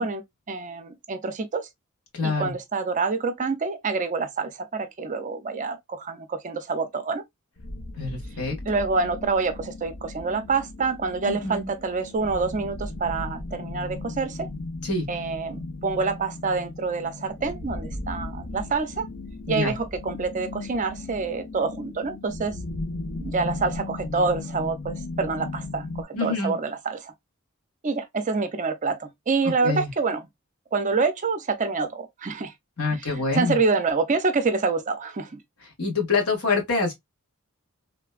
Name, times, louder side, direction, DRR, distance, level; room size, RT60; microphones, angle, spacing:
voice 1, 0.0-1.7 2.2-7.2 8.7-14.5 15.1-19.1 19.5-22.5 23.2-27.1 27.8-30.2 30.7-32.5 33.0-35.4, right 4 dB, 35° right, 0.5 m, -27 dB
voice 2, 2.1-2.5 8.0-8.6 11.2-11.7 14.8-15.1 19.5-19.7 26.1-26.6 29.6-29.9 32.8-33.6 35.8-36.9, left 4 dB, 80° left, 1.5 m, -26 dB
sound 1, 7.6-26.0, left 2 dB, 60° left, 0.7 m, -36 dB
3.1 x 2.2 x 2.3 m
head